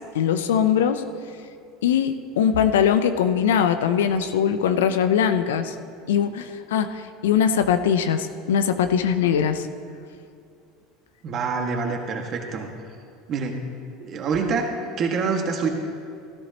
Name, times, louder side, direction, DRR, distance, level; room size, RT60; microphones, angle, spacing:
voice 1, 0.1-1.0 1.8-5.7 6.1-9.7, left 8 dB, 80° left, 10 dB, 0.7 m, -21 dB
voice 2, 11.2-12.7 13.3-13.6 14.0-15.7, right 5 dB, 45° right, 2 dB, 1.8 m, -26 dB
16.0 x 13.5 x 3.0 m, 2.4 s
hypercardioid pair, 80°, 0 cm